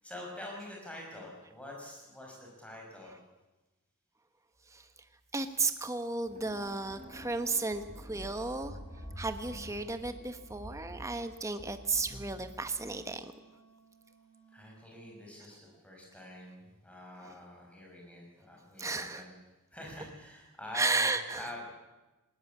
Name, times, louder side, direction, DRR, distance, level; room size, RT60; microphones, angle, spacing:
voice 1, 0.0-3.2 14.5-19.3 19.7-21.7, left 1 dB, 5° left, -1 dB, 6.5 m, -46 dB
voice 2, 5.3-8.8 9.2-13.2 18.8-19.2 20.7-21.5, right 3 dB, 15° right, 8 dB, 1.1 m, -33 dB
sound 1, 6.2-13.2, equal, 35° right, 3.7 m, -48 dB
Wind instrument woodwind instrument, 6.9-15.3, right 3 dB, 25° left, 4.6 m, -61 dB
19.0 x 19.0 x 8.7 m, 1.1 s
head